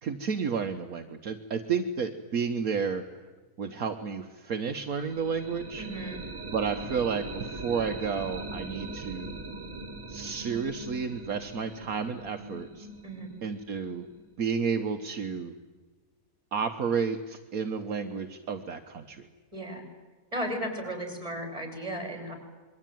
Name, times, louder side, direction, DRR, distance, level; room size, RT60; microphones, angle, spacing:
voice 1, 0.0-3.1 3.6-5.9 6.5-9.4 10.1-12.9 13.4-14.1 14.4-15.5 16.5-19.3, right 6 dB, 65° right, 6 dB, 1.6 m, -31 dB
sound 1, 4.7-14.5, right 2 dB, 50° right, 2.4 m, -41 dB
voice 2, 5.8-6.2 13.0-13.3 19.5-19.8 20.3-22.3, right 1 dB, 20° right, 5 dB, 6.1 m, -35 dB
27.0 x 22.5 x 9.3 m, 1.3 s
omnidirectional pair, 1.6 m